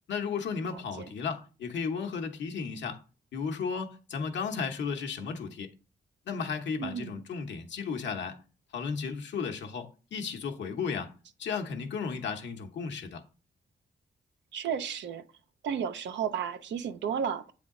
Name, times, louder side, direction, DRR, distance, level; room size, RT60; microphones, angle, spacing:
voice 1, 0.1-3.0 3.3-5.7 6.3-8.4 8.7-11.1 11.4-13.2, left 5 dB, 85° left, 0.9 m, -34 dB
voice 2, 0.6-1.1 6.8-7.1 14.5-15.2 15.6-17.5, right 8 dB, 90° right, 0.5 m, -33 dB
7.8 x 3.5 x 3.7 m
cardioid pair, 75°, 18 cm